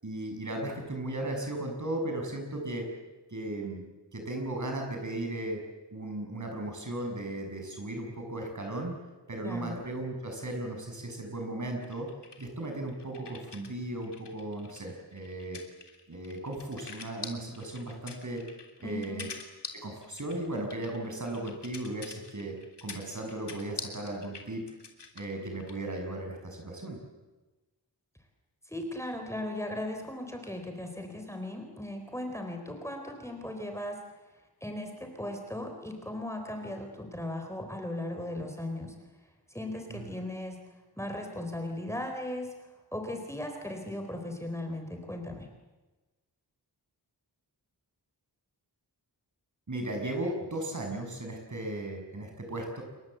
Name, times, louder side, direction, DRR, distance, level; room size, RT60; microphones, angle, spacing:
voice 1, 0.0-2.9 3.3-3.8 4.1-5.6 5.9-8.9 9.3-12.1 12.4-15.6 16.1-18.4 18.8-19.3 19.8-22.6 22.8-24.6 25.2-27.0 39.9-40.0 49.7-52.8, right 1 dB, 45° right, 2 dB, 7.0 m, -36 dB
voice 2, 9.4-9.7 18.8-19.3 28.7-34.0 34.6-38.9 39.5-40.6 41.0-42.5 42.9-45.5, left 1 dB, 5° left, 4 dB, 4.0 m, -37 dB
sound 1, 11.8-13.7 14.0-25.8, left 5 dB, 80° left, 3.2 m, -45 dB
28.5 x 22.5 x 7.9 m, 1.2 s
wide cardioid pair, 90°, 41 cm